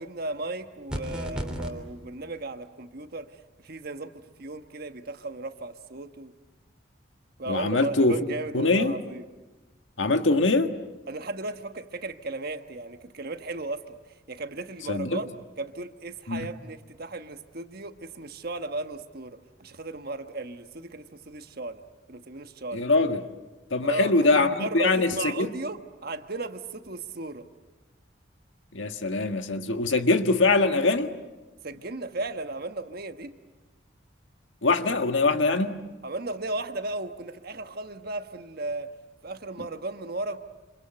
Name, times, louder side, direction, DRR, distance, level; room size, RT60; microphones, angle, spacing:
voice 1, 0.0-3.3 3.6-6.3 7.4-9.2 11.1-14.0 14.3-15.3 15.6-21.8 22.1-22.9 23.8-27.5 31.6-33.4 36.0-38.9 39.2-40.4, right 2 dB, 50° right, 1.3 m, -35 dB
sound 1, 0.9-1.7, equal, 5° right, 3.1 m, -32 dB
voice 2, 7.5-8.2 8.5-8.9 10.0-10.7 14.9-15.2 16.3-16.5 22.7-23.2 23.7-25.5 28.7-31.1 34.6-35.8, left 3 dB, 75° left, 1.6 m, -23 dB
27.5 x 26.5 x 8.0 m
head